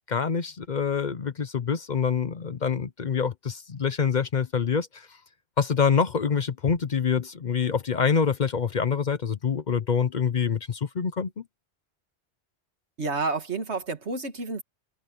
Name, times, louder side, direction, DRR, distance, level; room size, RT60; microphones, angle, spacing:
voice 1, 0.1-5.1 5.6-11.3, left 6 dB, 45° left, 0.8 m, -26 dB
voice 2, 13.0-14.6, right 3 dB, 80° right, 2.3 m, -30 dB
open air
omnidirectional pair, 1.1 m